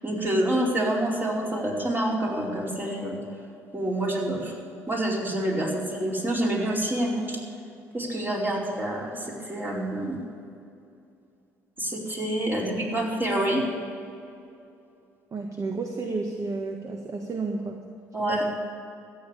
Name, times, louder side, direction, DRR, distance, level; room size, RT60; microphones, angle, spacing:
voice 1, 0.0-3.2 3.7-4.5 4.9-7.4 7.9-10.2 11.8-13.6 18.1-18.5, right 1 dB, 25° right, -3 dB, 4.7 m, -27 dB
voice 2, 15.3-17.8 18.3-18.4, right 3 dB, 40° right, 3 dB, 1.5 m, -31 dB
14.0 x 8.9 x 8.9 m, 2.6 s
hypercardioid pair, 55°, 8 cm